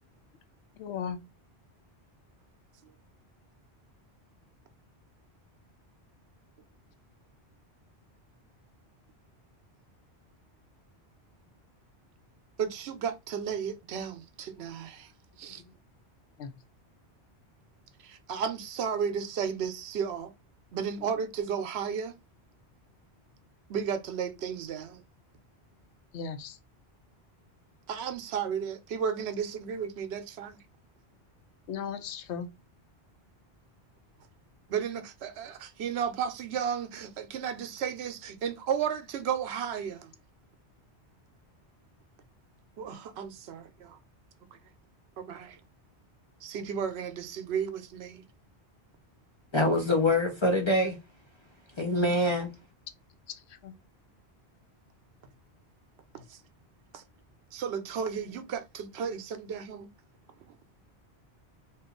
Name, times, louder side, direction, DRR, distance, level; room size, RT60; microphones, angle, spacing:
voice 1, 0.8-1.2 16.4-16.5 26.1-26.6 31.7-32.5 53.6-53.7, left 7 dB, 85° left, 0.9 m, -36 dB
voice 2, 12.6-15.1 15.4-15.6 18.0-20.3 20.7-22.1 23.7-25.0 27.9-30.6 34.7-40.1 42.8-44.0 45.2-45.6 46.4-48.2 52.0-52.1 56.1-56.4 56.9-57.0 57.5-59.9, right 7 dB, 75° right, 0.8 m, -33 dB
voice 3, 49.5-51.0 51.8-52.5, left 1 dB, 45° left, 0.4 m, -25 dB
2.7 x 2.3 x 3.6 m
omnidirectional pair, 1.1 m